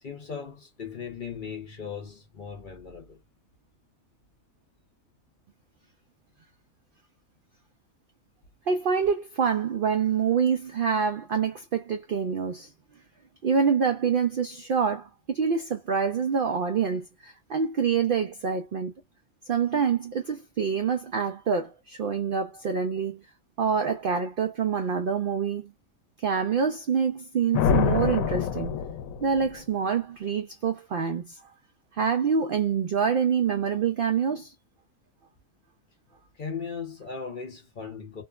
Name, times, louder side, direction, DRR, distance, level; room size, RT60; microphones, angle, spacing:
voice 1, 0.0-3.2 36.3-38.2, left 6 dB, 45° left, 0.7 m, -38 dB
voice 2, 8.7-12.7 13.4-18.9 19.5-23.2 23.6-25.7 26.2-28.8 29.2-31.4 31.9-34.5, right 6 dB, 70° right, 0.5 m, -26 dB
sound 1, 27.5-29.5, left 7 dB, 85° left, 1.0 m, -25 dB
3.1 x 2.1 x 2.3 m
omnidirectional pair, 1.4 m